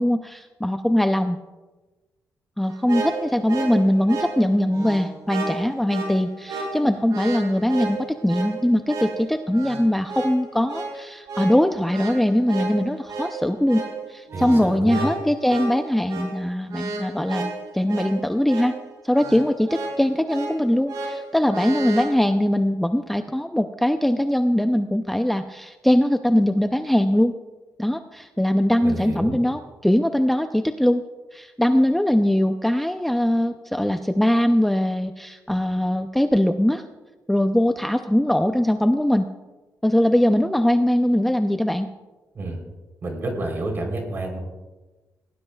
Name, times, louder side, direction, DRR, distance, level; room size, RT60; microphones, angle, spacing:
voice 1, 0.0-1.4 2.6-13.8 14.1-18.7 19.0-27.3 27.8-31.0 31.3-36.8 37.3-39.3 39.8-41.9, left 1 dB, 5° left, 6 dB, 0.4 m, -21 dB
sound 1, 2.7-22.1, right 3 dB, 70° right, 4.8 m, -32 dB
voice 2, 14.3-15.1 28.8-29.4 42.3-42.6 43.0-44.4, right 2 dB, 35° right, 2 dB, 3.4 m, -29 dB
19.0 x 18.0 x 2.3 m, 1.2 s
wide cardioid pair, 160°, 6 cm